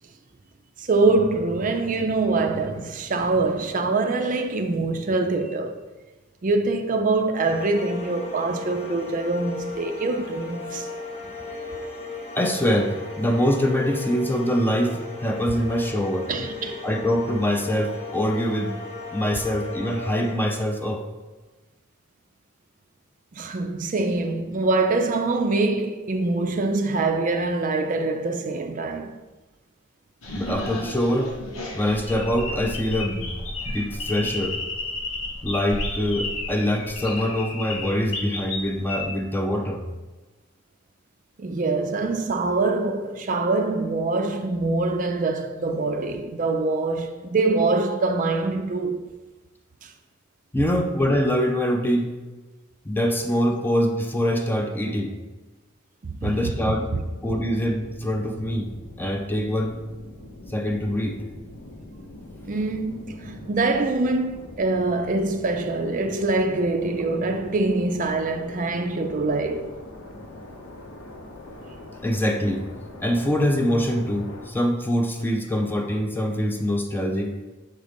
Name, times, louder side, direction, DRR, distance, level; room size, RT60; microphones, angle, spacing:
voice 1, 0.8-5.8 6.4-10.9 16.3-16.9 23.3-29.1 41.4-49.0 49.8-49.9 56.0-56.3 56.9-57.0 62.4-69.7, right 3 dB, 40° right, 0.4 m, -24 dB
sound 1, 7.4-20.3, left 3 dB, 30° left, 0.9 m, -36 dB
voice 2, 12.3-16.3 16.8-18.8 19.1-21.0 30.3-31.3 31.7-33.3 33.6-34.6 35.4-39.8 50.5-52.2 52.8-55.2 56.2-56.9 57.2-59.8 60.5-61.2 72.0-72.7 73.0-77.4, equal, 10° left, 0.5 m, -24 dB
sound 2, 30.2-39.1, left 2 dB, 90° left, 1.3 m, -32 dB
sound 3, 56.4-74.5, left 1 dB, 70° left, 0.9 m, -43 dB
7.2 x 3.8 x 5.2 m
head